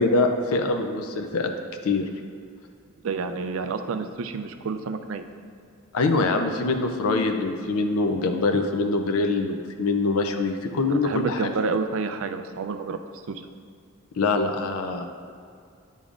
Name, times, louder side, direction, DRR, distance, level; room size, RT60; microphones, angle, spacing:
voice 1, 0.0-1.5 1.8-2.1 5.9-11.5 14.2-15.0, left 3 dB, 80° left, 5 dB, 0.5 m, -24 dB
voice 2, 3.0-5.2 10.9-13.0 13.3-13.4, right 4 dB, 65° right, 8 dB, 0.4 m, -29 dB
9.8 x 5.2 x 2.5 m, 2.3 s
head